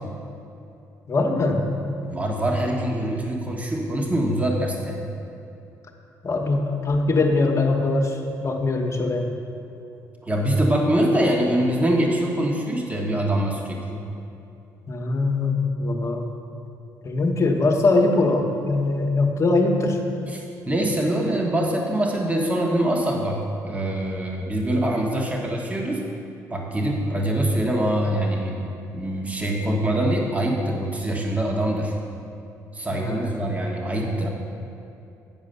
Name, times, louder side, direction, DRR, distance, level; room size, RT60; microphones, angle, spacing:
voice 1, 1.1-1.6 6.2-9.3 14.9-16.3 17.0-20.0 32.9-33.3, left 3 dB, 45° left, 2 dB, 1.2 m, -22 dB
voice 2, 2.0-5.0 10.2-14.0 20.3-26.0 26.5-31.9 32.7-34.3, right 1 dB, 20° right, 0 dB, 1.3 m, -24 dB
9.1 x 4.8 x 6.7 m, 2.7 s
supercardioid pair, 70°, 7 cm